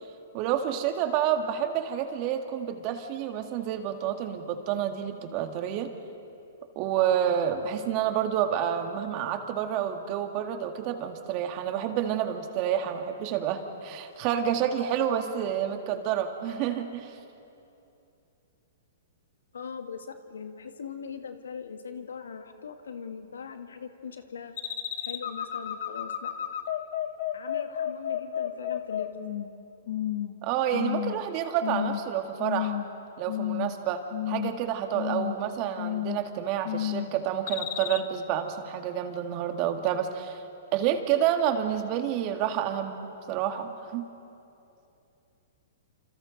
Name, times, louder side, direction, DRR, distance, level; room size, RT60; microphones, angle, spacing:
voice 1, 0.3-5.9 6.8-17.2 30.4-32.7 33.2-40.4 40.7-44.0, right 9 dB, 40° right, 6 dB, 2.0 m, -29 dB
voice 2, 19.5-24.5 25.0-26.3 27.3-29.1, left 6 dB, 85° left, 7 dB, 1.8 m, -40 dB
sound 1, 24.6-29.5 29.9-30.3 30.7-31.2 31.6-32.0 32.4-32.9 33.3-33.8 34.1-34.6 34.9-35.4 35.8-36.3 36.6-37.1 37.5-38.0, left 12 dB, 60° left, 1.3 m, -31 dB
28.5 x 27.0 x 4.1 m, 2.8 s
hypercardioid pair, 125°, 0 cm